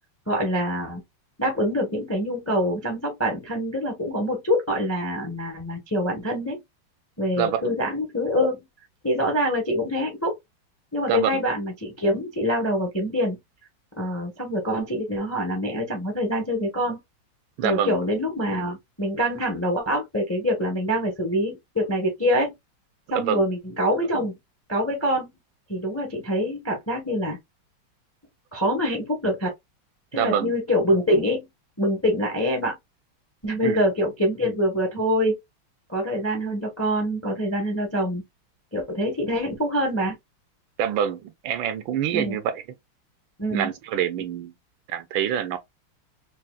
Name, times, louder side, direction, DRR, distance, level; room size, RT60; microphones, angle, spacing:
voice 1, 0.3-1.0 1.4-6.6 7.2-8.6 9.0-10.3 10.9-13.4 14.0-17.0 17.6-22.5 23.1-24.4 24.7-25.3 25.7-27.4 28.5-29.5 30.1-31.4 31.8-32.8 33.4-35.3 35.9-38.2 38.7-40.1 42.1-42.4 43.4-43.7, equal, 15° left, 0.5 m, -25 dB
voice 2, 7.4-7.8 11.1-11.4 17.6-18.0 23.1-23.4 30.1-30.5 33.6-33.8 40.8-42.6 43.5-44.5 44.9-45.6, right 9 dB, 75° right, 1.3 m, -26 dB
5.4 x 2.3 x 2.3 m
omnidirectional pair, 2.3 m